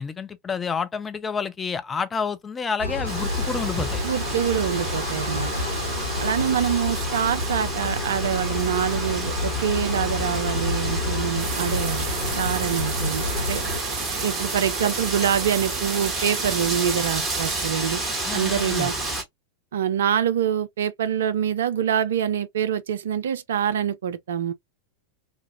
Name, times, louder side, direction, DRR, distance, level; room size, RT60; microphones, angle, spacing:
voice 1, 0.0-4.0 18.3-18.9, left 5 dB, 15° left, 0.5 m, -29 dB
sound 1, 2.8-13.8, left 2 dB, 90° right, 0.8 m, -29 dB
Wind, 3.0-19.2, right 2 dB, 15° right, 1.5 m, -31 dB
voice 2, 4.0-5.5 6.2-13.6 14.2-18.0 18.3-18.9 19.7-24.5, right 9 dB, 60° right, 0.4 m, -25 dB
sound 2, 11.4-17.6, right 6 dB, 45° right, 0.9 m, -33 dB
2.9 x 2.4 x 2.8 m
figure-of-eight pair, 90°, 0 cm